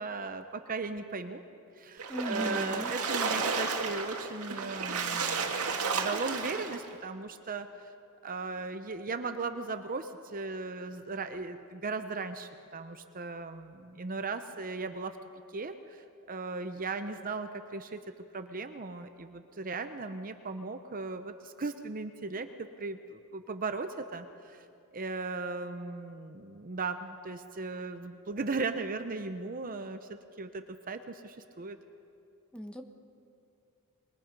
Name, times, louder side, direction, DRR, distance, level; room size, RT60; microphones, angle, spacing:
voice 1, 0.0-1.4 1.8-7.9 8.2-15.2 15.5-18.0 18.3-24.6 24.9-31.8, right 3 dB, 40° right, 9 dB, 0.7 m, -37 dB
Splash splatter, 2.0-6.9, right 4 dB, 80° right, 1.9 m, -32 dB
voice 2, 2.1-2.9 32.5-32.8, equal, 5° left, 5 dB, 1.2 m, -37 dB
24.5 x 22.0 x 5.3 m, 2.5 s
head